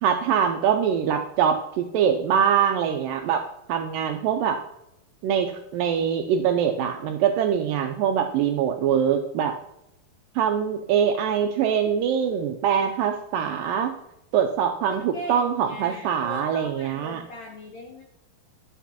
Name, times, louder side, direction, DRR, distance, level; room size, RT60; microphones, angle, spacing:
voice 1, 0.0-3.4 3.7-4.6 5.2-9.5 10.4-13.9 14.3-17.2, right 8 dB, 85° right, 5 dB, 2.0 m, -23 dB
voice 2, 14.8-18.0, left 1 dB, 75° left, 0 dB, 1.7 m, -39 dB
11.0 x 8.1 x 2.8 m, 0.83 s
omnidirectional pair, 4.4 m